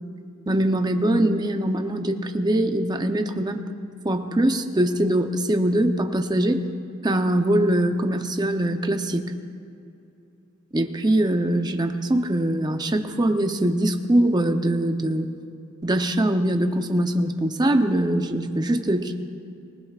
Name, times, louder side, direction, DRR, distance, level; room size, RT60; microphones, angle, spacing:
voice 1, 0.5-3.6 4.0-6.6 7.0-9.3 10.7-15.3 15.8-19.1, right 1 dB, 20° right, 6 dB, 0.7 m, -22 dB
24.0 x 16.5 x 2.4 m, 2.6 s
head